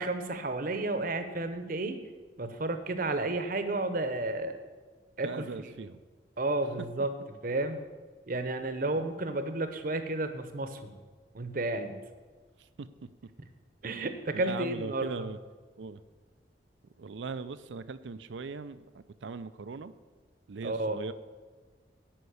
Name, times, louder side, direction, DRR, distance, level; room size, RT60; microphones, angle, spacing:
voice 1, 0.0-2.0 2.4-4.6 5.2-5.7 6.4-7.1 7.4-7.8 8.3-10.9 11.3-12.0 13.8-15.3 20.6-21.0, right 2 dB, 50° right, 9 dB, 0.9 m, -32 dB
voice 2, 5.2-6.0 12.6-12.9 14.3-15.4 15.8-16.0 17.0-19.9 20.5-21.1, right 4 dB, 85° right, 14 dB, 0.5 m, -39 dB
10.0 x 5.4 x 8.1 m, 1.4 s
head